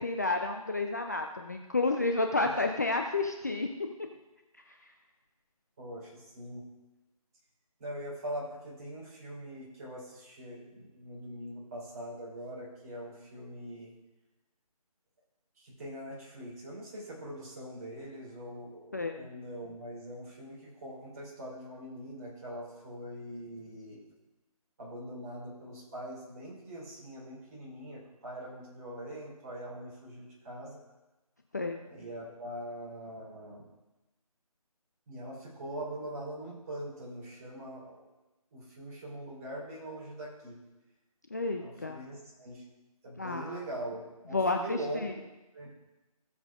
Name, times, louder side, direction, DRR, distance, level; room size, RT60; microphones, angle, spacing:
voice 1, 0.0-3.7 18.9-19.3 31.5-31.8 41.3-42.0 43.2-43.6 44.3-45.1, left 3 dB, 30° left, 4 dB, 0.4 m, -30 dB
voice 2, 5.8-6.6 7.8-13.9 15.6-24.0 24.8-30.8 31.9-33.6 35.1-38.1 38.5-40.5 41.6-42.7 43.0-45.1 45.5-45.7, right 1 dB, 25° right, -7 dB, 3.8 m, -42 dB
18.0 x 7.3 x 2.5 m, 1.0 s
figure-of-eight pair, 160°, 19 cm